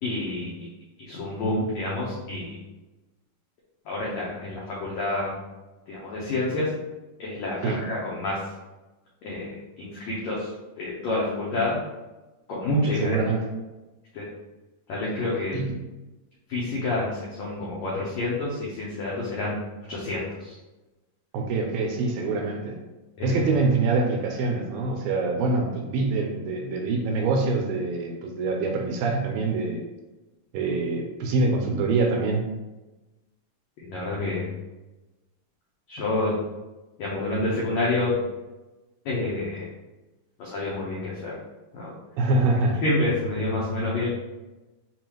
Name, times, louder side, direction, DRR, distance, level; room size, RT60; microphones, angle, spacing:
voice 1, 0.0-0.7 1.0-2.6 3.8-5.4 5.9-6.7 7.2-8.5 9.2-11.8 12.5-13.3 14.1-14.3 14.9-15.7 16.5-19.6 19.9-20.5 23.2-23.4 33.8-34.5 35.9-36.4 37.0-38.2 39.0-39.7 40.4-41.3 41.7-41.9 42.8-44.1, left 2 dB, 85° left, -6 dB, 1.5 m, -28 dB
voice 2, 13.0-13.4 15.5-15.7 21.3-22.8 23.2-29.8 30.5-32.4 42.2-42.8, right 3 dB, 80° right, 2 dB, 2.2 m, -25 dB
7.2 x 2.4 x 3.0 m, 1.1 s
omnidirectional pair, 4.4 m